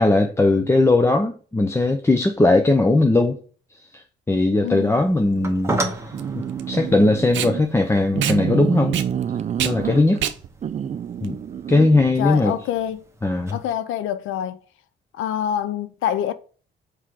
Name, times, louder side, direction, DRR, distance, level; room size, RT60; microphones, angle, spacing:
voice 1, 0.0-3.4 3.9-5.7 6.3-9.0 9.6-10.2 11.2-11.4 11.7-12.5 13.2-13.6, left 2 dB, 15° left, 0.7 m, -19 dB
voice 2, 4.6-5.0 12.2-13.0 13.5-14.6 15.1-16.3, left 10 dB, 85° left, 0.5 m, -26 dB
Packing tape duct tape, 4.6-12.0, right 10 dB, 70° right, 0.7 m, -31 dB
sound 1, 4.8-13.8, right 2 dB, 15° right, 1.2 m, -35 dB
sound 2, 6.1-7.6 8.1-10.2 10.6-12.0, right 8 dB, 35° right, 0.4 m, -27 dB
5.7 x 4.8 x 4.8 m
cardioid pair, 90°, 20 cm